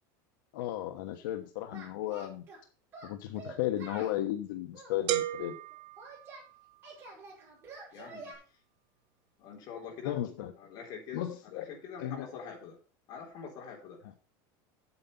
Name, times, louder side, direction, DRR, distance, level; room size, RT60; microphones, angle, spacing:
voice 1, 0.5-2.5 3.0-5.6 10.0-10.5 11.1-11.7 12.0-12.3, left 12 dB, 80° left, 6 dB, 1.1 m, -35 dB
Singing, 1.7-2.6 2.9-4.2 4.7-6.4 6.8-8.3, right 3 dB, 25° right, 5.3 m, -48 dB
sound 1, 5.1-7.0, right 15 dB, 50° right, 0.8 m, -35 dB
voice 2, 7.9-8.3 9.4-10.2 10.6-12.8 13.1-14.0, left 6 dB, 40° left, 0 dB, 3.8 m, -45 dB
8.3 x 8.1 x 5.5 m, 0.37 s
cardioid pair, 175°, 11 cm